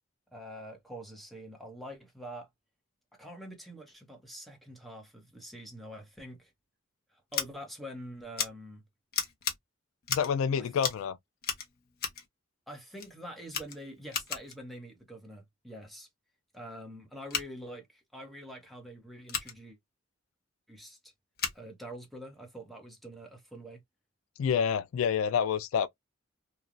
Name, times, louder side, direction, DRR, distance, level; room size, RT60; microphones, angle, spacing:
voice 1, 0.3-2.5 3.2-6.5 7.1-8.8 10.6-10.7 12.7-16.1 16.5-19.8 20.7-21.1 21.5-23.8, equal, ahead, 1.0 m, -45 dB
Scissors, 7.3-7.5 8.4-8.5 9.1-9.6 10.0-10.4 10.8-11.1 11.4-12.3 13.0-13.1 13.5-14.6 17.2-17.5 19.3-19.5 21.4-21.6, left 7 dB, 50° left, 0.8 m, -34 dB
voice 2, 10.1-11.2 24.4-25.9, left 7 dB, 80° left, 0.3 m, -28 dB
3.1 x 2.3 x 2.5 m
head